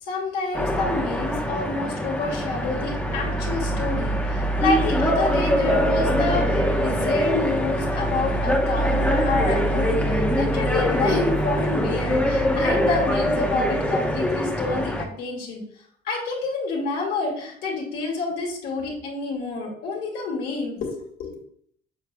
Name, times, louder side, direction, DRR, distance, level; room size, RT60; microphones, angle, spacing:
voice 1, 0.0-15.6 16.0-21.4, left 3 dB, 75° left, -2 dB, 2.6 m, -28 dB
sound 1, 0.5-15.0, equal, 10° left, 1.0 m, -23 dB
7.6 x 6.5 x 2.3 m, 0.63 s
cardioid pair, 110°, 17 cm